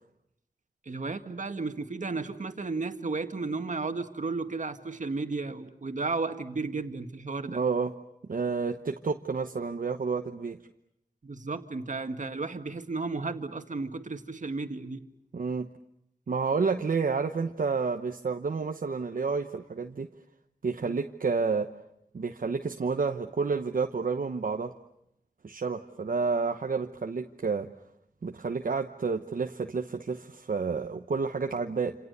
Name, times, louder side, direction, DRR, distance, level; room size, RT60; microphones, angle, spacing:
voice 1, 0.9-7.6 11.2-15.0 20.8-21.0, right 3 dB, 60° right, 7 dB, 1.9 m, -33 dB
voice 2, 7.5-7.9 8.3-10.6 15.3-15.7 16.3-20.1 20.6-21.7 22.1-24.7 25.4-27.7 28.2-32.0, right 4 dB, 75° right, 4 dB, 1.0 m, -30 dB
28.0 x 27.5 x 6.8 m, 0.78 s
wide cardioid pair, 65°, 14 cm